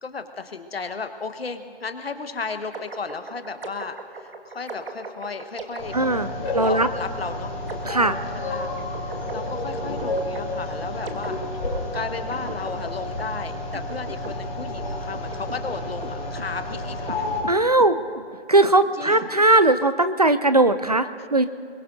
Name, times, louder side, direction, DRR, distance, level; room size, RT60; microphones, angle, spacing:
voice 1, 0.0-5.9 6.6-7.5 8.3-8.7 9.3-11.4 11.9-17.3 19.0-19.3 21.2-21.3, left 4 dB, 65° left, 8 dB, 1.4 m, -34 dB
sound 1, 2.7-19.4, right 3 dB, 55° right, 1.7 m, -40 dB
sound 2, 5.8-17.4, left 2 dB, 5° left, 0.7 m, -31 dB
voice 2, 5.9-6.3 6.5-6.9 7.8-8.2 17.5-18.0 18.5-21.5, right 2 dB, 35° right, 12 dB, 0.5 m, -19 dB
23.0 x 22.0 x 2.7 m, 2.5 s
figure-of-eight pair, 160°, 33 cm